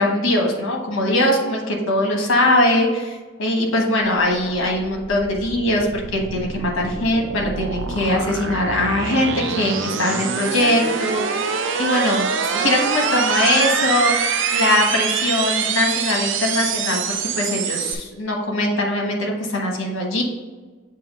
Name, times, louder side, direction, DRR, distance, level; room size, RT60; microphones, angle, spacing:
voice 1, 0.0-14.3 14.5-20.2, left 1 dB, 75° left, 0 dB, 1.2 m, -21 dB
sound 1, 4.2-17.9, right 6 dB, 65° right, 0.4 m, -25 dB
7.2 x 2.8 x 5.4 m, 1.3 s
head